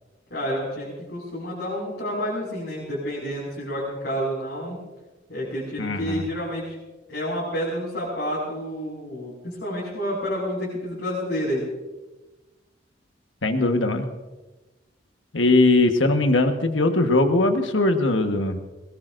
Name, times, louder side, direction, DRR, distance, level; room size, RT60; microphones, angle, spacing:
voice 1, 0.3-4.8 5.3-6.8 7.1-11.7, equal, 65° left, -6 dB, 5.8 m, -29 dB
voice 2, 5.8-6.2 13.4-14.1 15.3-18.6, left 2 dB, 80° left, 6 dB, 1.4 m, -20 dB
21.5 x 21.5 x 2.6 m, 1.1 s
head